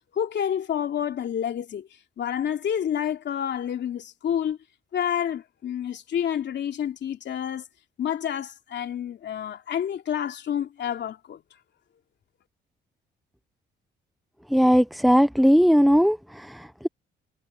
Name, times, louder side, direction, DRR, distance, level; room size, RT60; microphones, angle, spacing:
voice 1, 0.1-1.9 2.2-4.6 4.9-7.7 8.0-11.4, left 9 dB, 60° left, 2.9 m, -29 dB
voice 2, 14.5-16.5, equal, ahead, 0.7 m, -18 dB
cardioid pair, 90°, 20 cm